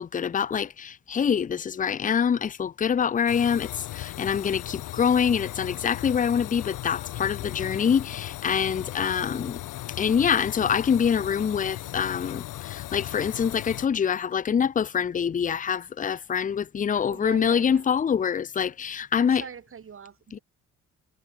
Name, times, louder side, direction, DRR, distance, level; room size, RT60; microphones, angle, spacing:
voice 1, 0.0-9.6 10.0-19.4 20.3-20.4, left 7 dB, 25° left, 0.6 m, -25 dB
sound 1, 3.3-13.9, left 16 dB, 85° left, 1.3 m, -37 dB
voice 2, 17.0-17.9 19.1-20.4, right 7 dB, 45° right, 2.6 m, -42 dB
cardioid pair, 90°, 30 cm